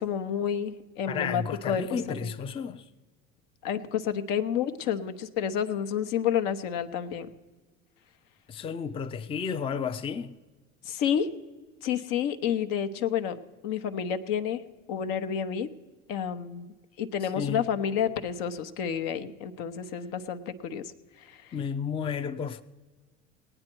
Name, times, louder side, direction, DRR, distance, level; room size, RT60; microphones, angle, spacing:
voice 1, 0.0-2.0 3.6-7.3 10.8-11.3 11.8-13.4 13.6-14.6 14.9-15.7 16.1-16.7 17.0-20.9 21.2-21.5, left 8 dB, 65° left, 0.9 m, -30 dB
voice 2, 1.1-2.9 8.5-10.3 17.2-17.7 21.5-22.6, left 6 dB, 15° left, 0.4 m, -32 dB
18.5 x 8.9 x 4.5 m
hypercardioid pair, 75°, 36 cm